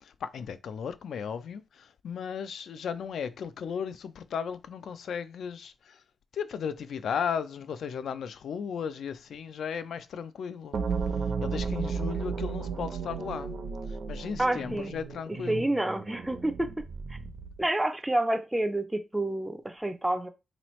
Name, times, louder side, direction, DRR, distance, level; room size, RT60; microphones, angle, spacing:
voice 1, 0.0-6.0 6.3-10.8 11.4-13.5 14.1-15.7, left 7 dB, 70° left, 0.3 m, -35 dB
sound 1, 10.7-17.6, right 5 dB, 55° right, 0.7 m, -34 dB
voice 2, 14.4-14.9 15.3-16.7 17.6-20.3, right 1 dB, 10° right, 0.4 m, -28 dB
3.9 x 3.0 x 3.0 m
wide cardioid pair, 140°, 0 cm